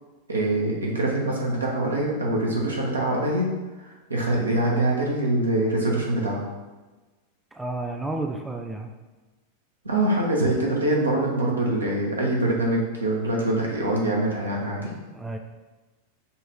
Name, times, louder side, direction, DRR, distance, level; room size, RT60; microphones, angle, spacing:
voice 1, 0.3-3.5 3.8-6.4 9.8-14.9, right 1 dB, 75° right, -2 dB, 1.0 m, -24 dB
voice 2, 7.5-8.9 15.1-15.4, right 2 dB, 10° right, 3 dB, 0.4 m, -31 dB
5.4 x 2.5 x 3.1 m, 1.2 s
figure-of-eight pair, 90°, 0 cm